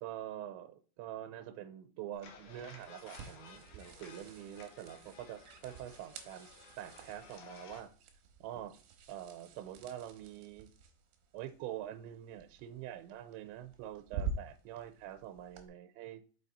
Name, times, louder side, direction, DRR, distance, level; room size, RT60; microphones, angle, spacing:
voice 1, 0.0-6.5 6.8-7.9 8.4-8.8 9.1-10.7 11.3-16.2, right 11 dB, 90° right, 2.9 m, -45 dB
sound 1, 2.1-15.7, right 5 dB, 70° right, 2.5 m, -48 dB
sound 2, 2.2-7.8, left 5 dB, 85° left, 1.8 m, -56 dB
6.0 x 5.3 x 4.1 m
omnidirectional pair, 5.2 m